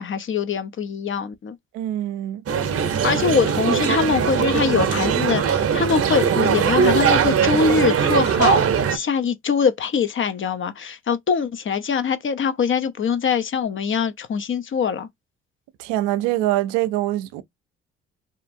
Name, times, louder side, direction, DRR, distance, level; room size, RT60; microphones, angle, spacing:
voice 1, 0.0-1.6 3.0-8.6 8.9-15.1, left 6 dB, 40° left, 0.7 m, -23 dB
voice 2, 1.7-2.4 15.8-17.4, right 14 dB, 80° right, 0.5 m, -24 dB
sound 1, 2.5-9.0, right 7 dB, 45° right, 0.7 m, -20 dB
2.8 x 2.3 x 2.6 m
hypercardioid pair, 50°, 32 cm